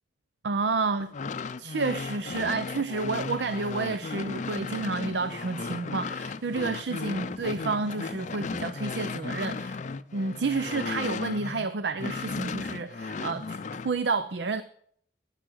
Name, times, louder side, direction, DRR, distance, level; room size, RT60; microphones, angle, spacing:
voice 1, 0.4-1.1 1.6-9.8 10.1-13.6 13.8-14.6, right 4 dB, 70° right, 0.6 m, -30 dB
sound 1, 1.0-11.7 12.0-13.9, left 4 dB, 45° left, 0.5 m, -35 dB
18.0 x 7.0 x 6.3 m
head